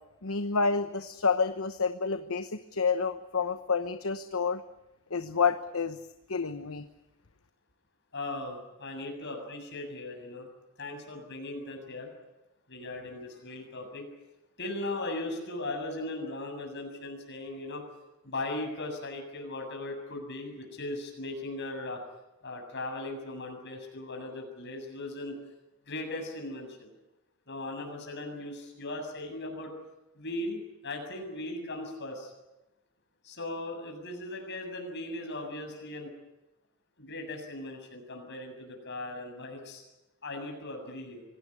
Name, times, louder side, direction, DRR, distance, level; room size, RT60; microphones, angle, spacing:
voice 1, 0.2-4.6 5.1-6.0 6.3-6.8, left 5 dB, 70° left, 10 dB, 1.1 m, -29 dB
voice 2, 8.1-10.5 10.8-12.1 12.7-14.0 14.6-17.8 18.2-22.0 22.4-25.4 25.9-26.9 27.5-29.7 30.1-32.3 33.2-36.1 37.0-39.8 40.2-41.2, left 2 dB, 55° left, 3 dB, 7.6 m, -38 dB
25.5 x 18.0 x 10.0 m, 0.97 s
head